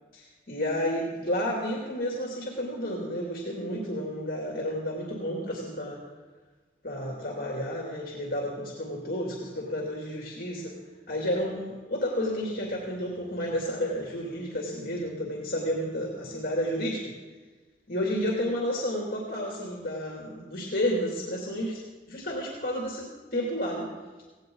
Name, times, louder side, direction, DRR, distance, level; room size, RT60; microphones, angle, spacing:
voice 1, 0.1-6.0 6.8-10.7 11.1-17.1 17.9-21.8 22.1-23.9, equal, 55° left, -2 dB, 2.8 m, -31 dB
17.5 x 17.5 x 4.0 m, 1.3 s
head